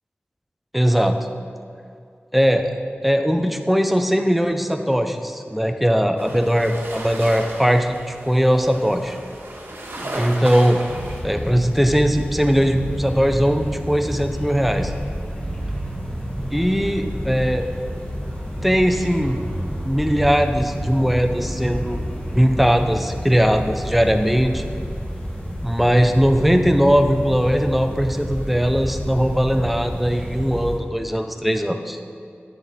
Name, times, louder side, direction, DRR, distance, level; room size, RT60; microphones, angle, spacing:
voice 1, 0.7-1.2 2.3-2.7 3.0-9.2 10.2-10.8 11.2-14.9 16.5-17.7 18.6-19.4 19.8-22.0 22.3-24.7 25.6-32.0, equal, 5° right, 6 dB, 0.6 m, -19 dB
sound 1, 6.2-11.2, right 1 dB, 75° right, 1.5 m, -34 dB
sound 2, 10.9-30.8, equal, 25° left, 1.7 m, -31 dB
sound 3, 12.5-30.3, right 1 dB, 45° right, 1.6 m, -36 dB
10.0 x 7.1 x 4.2 m, 2.4 s
wide cardioid pair, 75°, 4 cm